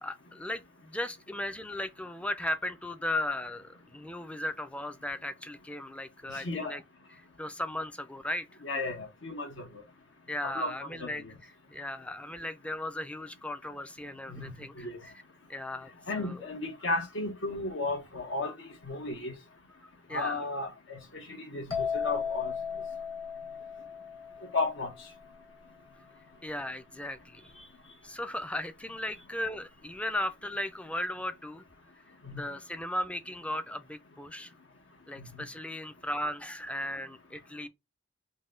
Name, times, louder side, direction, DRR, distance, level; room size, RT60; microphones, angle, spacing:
voice 1, 0.0-6.8 7.4-8.5 10.3-11.2 11.7-15.1 15.5-16.5 19.8-20.4 26.4-27.5 28.0-31.6 32.3-34.5 35.1-37.7, left 1 dB, 5° left, 0.4 m, -36 dB
voice 2, 6.3-6.8 8.6-9.7 10.4-11.3 14.3-14.4 14.8-15.0 16.1-18.5 18.9-19.3 20.1-21.0 21.3-22.5 24.5-24.9 32.2-32.4 35.2-35.3, left 2 dB, 70° left, 1.1 m, -34 dB
sound 1, 21.7-25.3, left 6 dB, 30° left, 1.0 m, -36 dB
4.0 x 2.2 x 3.7 m
head